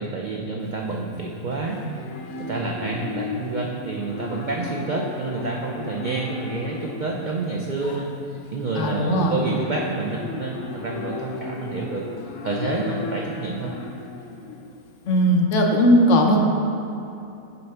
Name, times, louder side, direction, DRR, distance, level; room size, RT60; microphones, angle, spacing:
voice 1, 0.0-2.1 2.4-12.0 12.4-13.7, right 3 dB, 70° right, -1 dB, 0.4 m, -28 dB
Livestock farm animals working animals, 0.6-15.4, left 3 dB, 85° left, 1.2 m, -36 dB
voice 2, 8.8-9.3 15.1-16.4, equal, 65° left, 1 dB, 1.0 m, -18 dB
8.3 x 3.3 x 5.6 m, 2.9 s
omnidirectional pair, 1.4 m